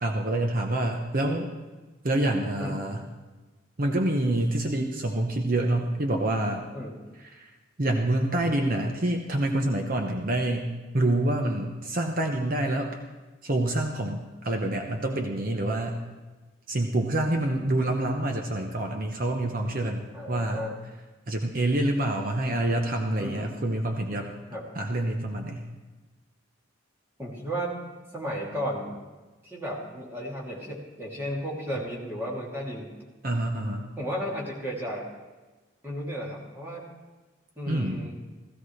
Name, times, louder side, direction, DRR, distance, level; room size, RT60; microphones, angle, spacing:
voice 1, 0.0-1.5 2.0-3.0 3.8-6.6 7.2-7.4 7.8-13.0 13.4-16.1 16.7-20.6 21.3-24.3 24.7-25.6 33.2-33.9 37.7-38.0, right 1 dB, 45° right, 2 dB, 0.9 m, -27 dB
voice 2, 20.1-20.7 23.2-23.5 24.5-24.6 27.2-27.8 28.1-28.9 29.4-32.9 34.0-35.1 35.8-36.8 37.6-38.1, equal, 10° right, -5 dB, 2.6 m, -34 dB
16.0 x 15.0 x 3.2 m, 1.2 s
head